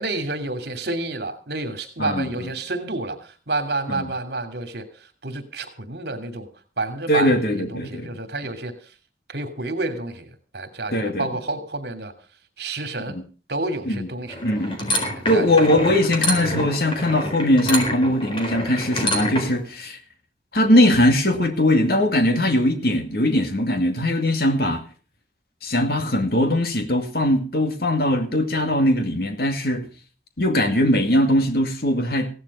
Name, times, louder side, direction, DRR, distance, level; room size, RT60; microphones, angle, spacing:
voice 1, 0.0-4.8 5.2-6.5 6.8-8.7 9.3-12.1 12.6-13.2 13.5-14.4 15.1-15.7, right 2 dB, 65° right, 2.9 m, -29 dB
voice 2, 7.1-8.1 10.9-11.3 13.9-14.1 14.4-15.0 15.3-20.0 20.5-24.8 25.6-29.9 30.4-32.3, left 1 dB, 55° left, 2.3 m, -20 dB
sound 1, 14.3-19.6, left 1 dB, 30° left, 4.2 m, -27 dB
17.0 x 11.5 x 5.4 m
head